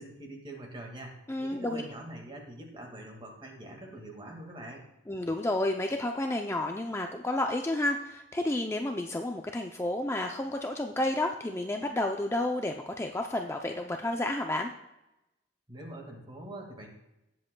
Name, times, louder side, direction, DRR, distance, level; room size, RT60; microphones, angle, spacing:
voice 1, 0.0-4.8 15.7-16.9, right 1 dB, 25° right, 1 dB, 1.9 m, -44 dB
voice 2, 1.3-1.8 5.1-14.7, left 1 dB, 15° left, 3 dB, 0.5 m, -31 dB
18.0 x 7.7 x 2.2 m, 0.93 s
head